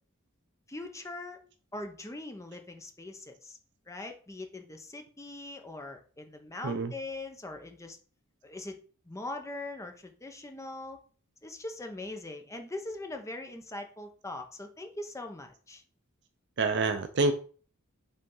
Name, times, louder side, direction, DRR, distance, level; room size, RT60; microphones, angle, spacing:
voice 1, 0.7-1.4 1.7-3.6 3.9-8.0 8.4-8.8 9.1-11.0 11.4-15.8, left 2 dB, 15° left, 5 dB, 0.8 m, -41 dB
voice 2, 16.6-17.3, right 3 dB, 55° right, 8 dB, 0.5 m, -27 dB
5.5 x 3.4 x 5.4 m, 0.41 s
head